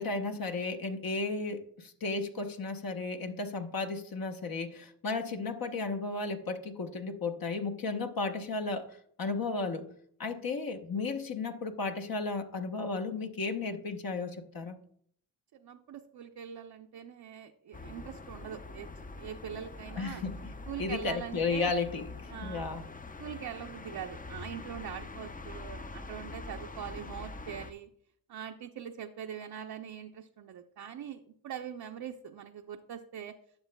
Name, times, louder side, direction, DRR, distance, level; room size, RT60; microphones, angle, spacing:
voice 1, 0.0-8.9 9.2-9.9 10.2-14.8 19.9-20.4 20.8-22.9, left 3 dB, 55° left, 5 dB, 1.0 m, -34 dB
voice 2, 15.5-18.9 19.2-20.2 20.7-21.7 22.3-22.7 23.2-27.9 28.3-33.3, right 9 dB, 65° right, 3 dB, 0.6 m, -43 dB
sound 1, 17.7-27.7, left 3 dB, 20° left, 0.5 m, -44 dB
11.5 x 6.6 x 2.2 m, 0.64 s
cardioid pair, 55°, 41 cm